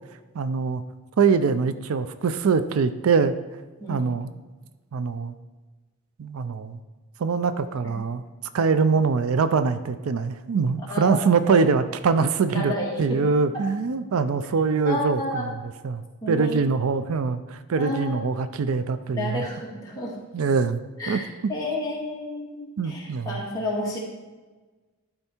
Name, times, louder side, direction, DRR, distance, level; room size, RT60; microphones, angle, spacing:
voice 1, 0.3-0.8 1.2-3.3 3.9-4.3 4.9-5.3 6.2-6.8 7.2-8.2 8.5-12.7 13.0-15.5 15.8-19.4 20.3-20.8 21.1-21.2 22.8-23.4, right 5 dB, 75° right, 12 dB, 0.4 m, -23 dB
voice 2, 3.8-4.1 7.8-7.9 10.9-11.6 12.5-13.2 14.8-15.4 16.2-16.6 17.8-18.3 19.1-20.2 21.0-24.0, left 1 dB, 15° left, -5 dB, 2.0 m, -31 dB
11.5 x 4.4 x 4.4 m, 1.3 s
head